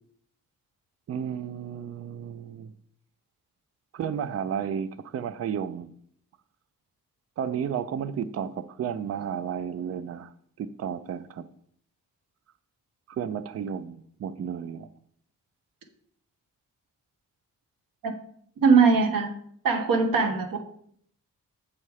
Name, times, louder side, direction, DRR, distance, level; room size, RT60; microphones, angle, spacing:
voice 1, 1.1-2.7 3.9-5.9 7.4-10.3 10.6-11.5 13.1-14.9, right 8 dB, 50° right, 0.4 m, -32 dB
voice 2, 18.6-19.3 19.6-20.6, right 5 dB, 85° right, 1.4 m, -20 dB
7.6 x 5.5 x 4.8 m
wide cardioid pair, 175°, 33 cm